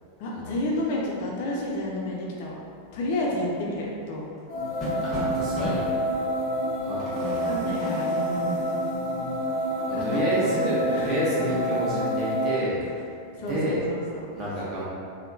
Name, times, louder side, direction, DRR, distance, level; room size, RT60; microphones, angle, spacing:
voice 1, 0.2-2.5 2.9-4.2 7.4-8.8 9.9-11.1 11.4-11.6 13.4-14.3, left 1 dB, 50° left, -3 dB, 0.5 m, -31 dB
sound 1, 3.8-10.7 11.1-11.2 11.5-13.0, right 1 dB, 15° right, 1.4 m, -38 dB
sound 2, 4.5-12.5, equal, 55° right, 1.4 m, -28 dB
voice 2, 5.0-5.9 6.8-7.5 9.9-12.8 13.4-13.8 14.3-14.8, right 1 dB, 35° right, -8 dB, 1.1 m, -29 dB
3.5 x 2.2 x 2.6 m, 2.4 s
figure-of-eight pair, 90°, 0 cm